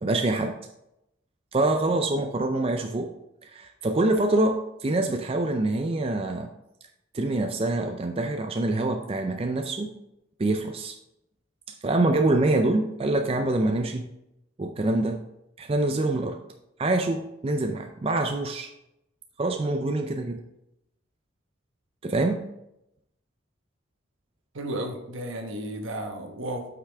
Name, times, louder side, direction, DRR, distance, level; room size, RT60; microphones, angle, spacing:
voice 1, 0.0-0.6 1.5-3.1 3.4-6.5 7.1-9.9 10.4-11.0 11.7-14.1 14.6-15.2 15.6-16.4 16.8-18.7 19.4-20.4 22.0-22.4, right 2 dB, 30° right, 5 dB, 0.4 m, -25 dB
voice 2, 24.5-26.6, right 1 dB, 75° right, 3 dB, 1.1 m, -33 dB
8.0 x 5.8 x 3.4 m, 0.85 s
head